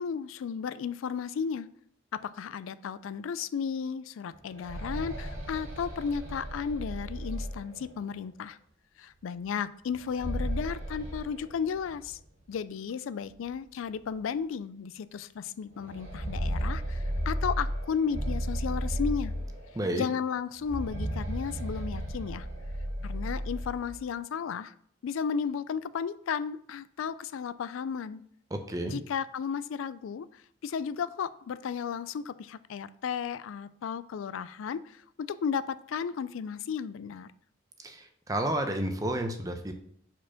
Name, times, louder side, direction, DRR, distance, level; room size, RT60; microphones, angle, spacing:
voice 1, 0.0-1.7 2.1-8.6 9.0-12.2 12.5-19.3 19.9-22.5 23.0-24.7 25.0-28.2 28.8-37.3, left 6 dB, 85° left, 16 dB, 0.4 m, -34 dB
sound 1, 4.3-8.1 9.9-12.1 12.4-12.5 13.4-13.5 14.0-14.1 15.7-19.9 20.6-24.0, equal, 85° right, 2.4 m, -34 dB
voice 2, 28.5-29.0 37.8-39.7, right 1 dB, 20° right, 5 dB, 0.7 m, -31 dB
5.0 x 4.4 x 5.7 m, 0.66 s
head